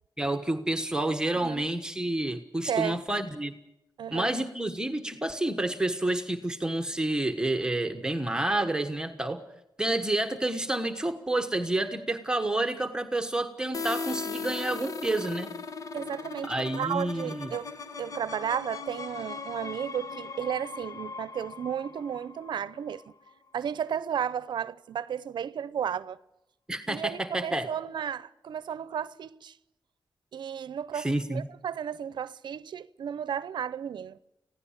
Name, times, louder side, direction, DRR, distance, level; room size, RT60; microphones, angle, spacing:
voice 1, 0.2-3.5 4.1-9.4 9.8-15.5 16.4-17.5 26.7-27.7 30.9-31.5, right 1 dB, 10° right, 1.3 m, -29 dB
voice 2, 2.7-3.0 4.0-4.3 15.9-17.7 18.0-23.0 23.5-26.2 26.9-29.5 30.3-34.2, right 8 dB, 85° right, 0.7 m, -33 dB
sound 1, 13.7-23.3, left 4 dB, 50° left, 1.3 m, -39 dB
26.0 x 16.0 x 7.3 m
wide cardioid pair, 125°, 8 cm